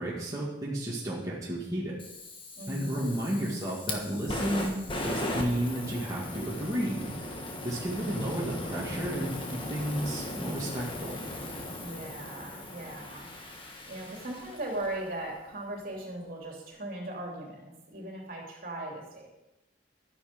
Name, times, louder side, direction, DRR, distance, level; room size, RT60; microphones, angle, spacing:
voice 1, 0.0-1.9 2.7-7.1 7.6-11.2, right 1 dB, 20° right, -7 dB, 2.2 m, -32 dB
Fire, 2.0-15.1, left 1 dB, 25° left, 1.4 m, -38 dB
voice 2, 2.6-3.2 11.8-13.3 13.9-19.3, right 1 dB, 50° right, -1 dB, 3.2 m, -38 dB
12.5 x 9.8 x 5.3 m, 0.96 s
head